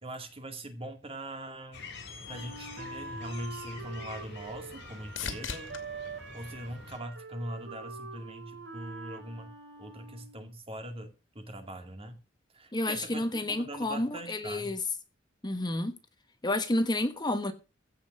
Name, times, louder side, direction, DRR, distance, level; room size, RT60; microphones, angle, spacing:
voice 1, 0.0-1.9 2.3-5.7 6.3-9.5 9.8-12.2 12.5-14.7, right 1 dB, 30° right, 2.3 m, -41 dB
sound 1, 1.7-7.0, left 3 dB, 60° left, 4.9 m, -47 dB
Wind instrument woodwind instrument, 2.3-10.4, right 3 dB, 65° right, 3.7 m, -45 dB
sound 2, 4.1-7.6 8.2-8.8 16.6-16.7, left 6 dB, 85° left, 2.4 m, -44 dB
voice 2, 12.7-14.8 15.4-15.9 16.4-17.5, left 1 dB, 20° left, 1.2 m, -30 dB
15.5 x 5.5 x 7.7 m
head